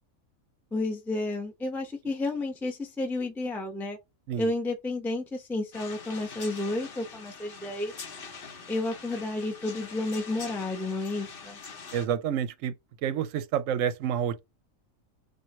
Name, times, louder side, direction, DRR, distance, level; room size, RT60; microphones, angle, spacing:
voice 1, 0.7-4.0 4.4-7.9 8.7-11.6, left 2 dB, ahead, 0.7 m, -31 dB
sound 1, 5.7-12.1, left 5 dB, 45° left, 0.9 m, -44 dB
voice 2, 11.9-12.7 13.0-14.4, right 9 dB, 70° right, 0.9 m, -28 dB
4.5 x 2.6 x 4.2 m
omnidirectional pair, 1.5 m